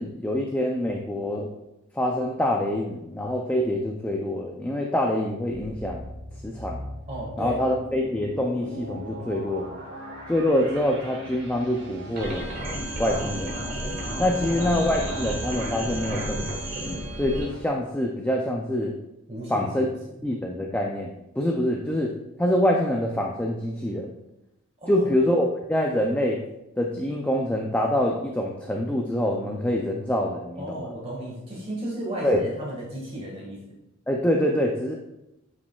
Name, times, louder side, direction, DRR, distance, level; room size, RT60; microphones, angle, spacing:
voice 1, 0.0-1.5 2.0-6.1 6.4-6.8 7.4-9.7 10.3-12.5 13.0-13.6 14.2-18.9 19.5-19.9 20.2-22.1 22.4-24.1 24.9-26.4 26.8-30.9 32.2-32.4 34.1-34.9, left 1 dB, 10° left, 0 dB, 0.4 m, -25 dB
sound 1, 5.5-17.6, equal, 60° right, 1.7 m, -40 dB
voice 2, 7.1-7.6 14.2-14.8 19.3-20.2 24.8-25.1 30.6-33.7, right 1 dB, 30° right, -4 dB, 1.6 m, -35 dB
sound 2, 12.2-17.4, right 1 dB, 45° right, 1.7 m, -32 dB
8.2 x 5.3 x 2.3 m, 0.89 s
head